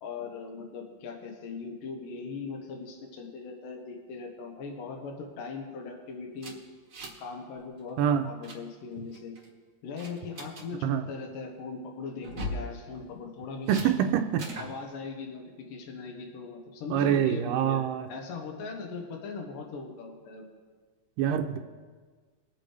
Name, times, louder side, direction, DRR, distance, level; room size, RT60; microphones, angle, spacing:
voice 1, 0.0-6.6 7.2-8.0 8.2-9.3 9.8-13.9 14.6-20.5, left 4 dB, 80° left, 3 dB, 2.8 m, -39 dB
sound 1, 6.4-7.3 7.6-7.8 8.1-8.6 9.1-9.5 10.0-10.7 12.2-12.7 13.7-13.9 14.4-14.7, equal, 45° right, 1.0 m, -38 dB
voice 2, 8.0-8.3 10.8-11.0 13.7-14.5 16.9-18.1 21.2-21.6, right 9 dB, 85° right, 6 dB, 2.2 m, -25 dB
21.5 x 8.5 x 3.2 m, 1.5 s
omnidirectional pair, 3.9 m